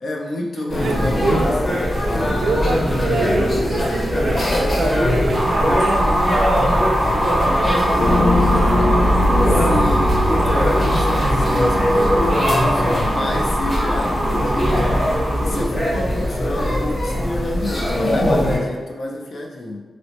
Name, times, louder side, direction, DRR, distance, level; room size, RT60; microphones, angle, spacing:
voice 1, 0.0-2.3 9.5-19.8, left 1 dB, 55° left, -1 dB, 0.5 m, -29 dB
sound 1, 0.7-18.6, equal, 20° left, 0.8 m, -21 dB
voice 2, 0.8-1.6 2.4-9.2, right 3 dB, 65° right, 4 dB, 0.3 m, -26 dB
sound 2, 5.3-15.7, equal, 10° right, 0.6 m, -23 dB
sound 3, 8.0-13.4, left 1 dB, 70° left, 1.0 m, -21 dB
3.9 x 2.0 x 2.8 m, 1.3 s
wide cardioid pair, 165°, 0 cm